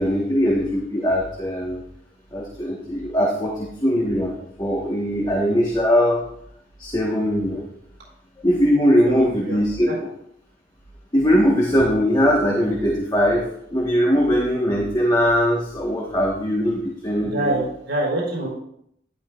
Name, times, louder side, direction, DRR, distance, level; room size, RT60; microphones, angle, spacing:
voice 1, 0.0-1.8 2.3-6.2 6.8-7.7 8.4-9.9 11.1-17.6, equal, 25° left, -3 dB, 1.5 m, -20 dB
voice 2, 9.0-9.6 9.9-10.0 17.2-18.5, right 1 dB, 80° right, -5 dB, 4.0 m, -25 dB
12.0 x 10.5 x 2.5 m, 0.72 s
head